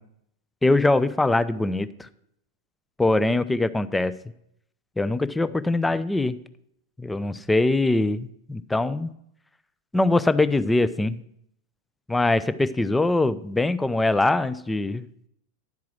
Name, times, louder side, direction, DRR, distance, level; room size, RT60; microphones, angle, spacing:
voice 1, 0.6-2.1 3.0-4.1 5.0-6.4 7.0-9.1 9.9-11.2 12.1-15.1, left 2 dB, 5° left, 15 dB, 0.3 m, -22 dB
10.5 x 4.7 x 6.0 m, 0.74 s
figure-of-eight pair, 90°, 0 cm